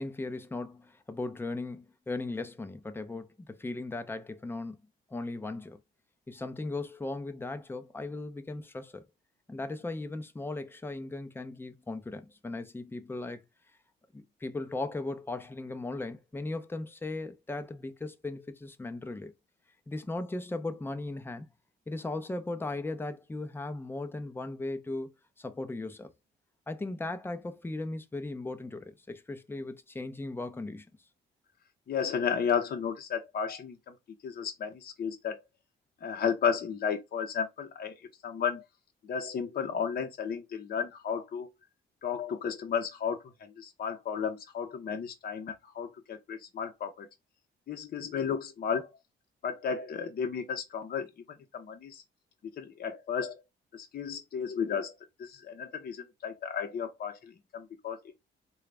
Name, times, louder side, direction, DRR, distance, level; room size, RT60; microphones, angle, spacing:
voice 1, 0.0-4.8 5.1-5.8 6.3-9.0 9.5-13.4 14.1-19.3 19.9-21.5 21.9-25.1 25.4-26.1 26.7-30.9, left 2 dB, 10° left, 0.6 m, -37 dB
voice 2, 31.9-33.8 34.2-35.4 36.0-37.9 38.2-38.6 39.1-41.5 42.0-43.2 43.6-47.1 47.7-48.9 49.4-51.1 51.5-52.0 52.6-53.4 53.7-54.9 55.2-58.0, left 7 dB, 50° left, 0.7 m, -33 dB
3.8 x 2.3 x 3.3 m
cardioid pair, 90°, 20 cm